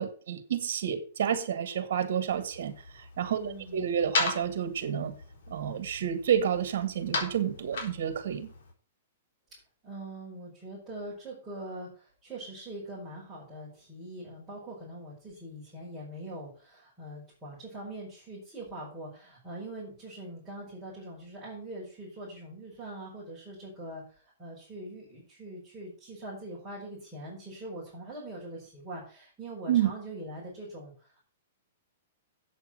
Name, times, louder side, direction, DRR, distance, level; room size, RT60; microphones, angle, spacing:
voice 1, 0.0-5.2 5.5-8.5 29.7-29.9, right 9 dB, 65° right, 11 dB, 1.7 m, -30 dB
sound 1, 2.3-8.7, left 3 dB, 60° left, 4.3 m, -37 dB
voice 2, 3.3-4.0 9.8-31.2, right 1 dB, 10° right, -9 dB, 5.1 m, -43 dB
8.3 x 7.0 x 7.6 m, 0.39 s
hypercardioid pair, 165°, 0 cm